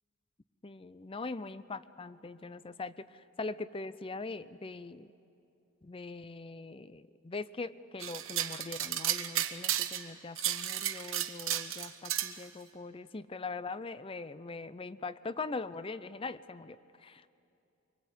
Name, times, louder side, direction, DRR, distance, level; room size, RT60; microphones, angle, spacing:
voice 1, 0.6-5.1 5.8-17.4, left 3 dB, 25° left, 15 dB, 0.5 m, -42 dB
sound 1, 8.0-10.1 10.4-12.3, right 12 dB, 80° right, 1.1 m, -33 dB
24.5 x 24.0 x 8.3 m, 2.7 s
head